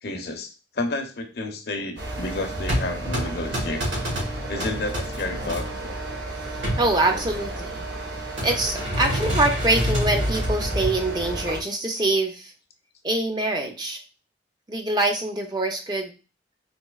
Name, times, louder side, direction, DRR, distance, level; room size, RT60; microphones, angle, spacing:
voice 1, 0.0-3.8 4.5-5.7, left 2 dB, 55° left, 5 dB, 0.5 m, -31 dB
sound 1, 2.0-11.6, right 2 dB, 65° right, 0.7 m, -33 dB
sound 2, 2.5-5.6 6.4-7.5 8.4-11.0, equal, 90° right, 1.8 m, -27 dB
voice 2, 6.8-7.8 8.4-12.5 13.0-14.0 14.7-16.1, right 2 dB, 25° right, 3 dB, 0.4 m, -24 dB
4.1 x 2.6 x 2.2 m, 0.32 s
head